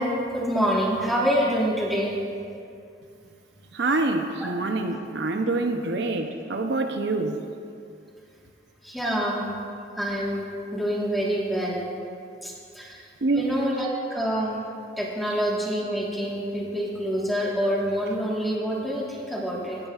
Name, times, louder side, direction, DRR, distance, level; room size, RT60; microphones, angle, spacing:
voice 1, 0.0-2.2 4.9-5.0 8.8-9.5 10.0-10.4 10.7-11.8 12.4-13.1 13.3-14.6 15.0-19.8, equal, ahead, -4 dB, 1.4 m, -26 dB
voice 2, 3.7-7.4 13.2-13.5, right 2 dB, 70° right, 5 dB, 0.6 m, -26 dB
17.5 x 9.8 x 2.4 m, 2.4 s
head